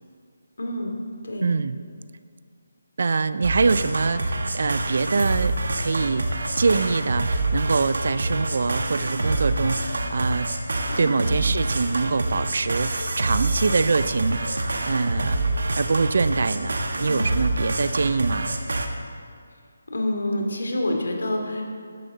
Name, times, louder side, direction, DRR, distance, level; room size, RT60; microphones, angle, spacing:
voice 1, 0.6-0.9 1.2-1.5 10.9-11.3 17.1-17.2 19.9-21.6, left 1 dB, 85° left, 1 dB, 2.4 m, -27 dB
voice 2, 1.4-1.8 3.0-6.3 6.6-10.5 11.0-15.4 15.7-18.6, right 4 dB, 45° right, 14 dB, 0.3 m, -24 dB
sound 1, 3.4-18.9, right 2 dB, 75° right, 1.2 m, -26 dB
13.0 x 11.0 x 3.9 m, 2.2 s
hypercardioid pair, 180°, 0 cm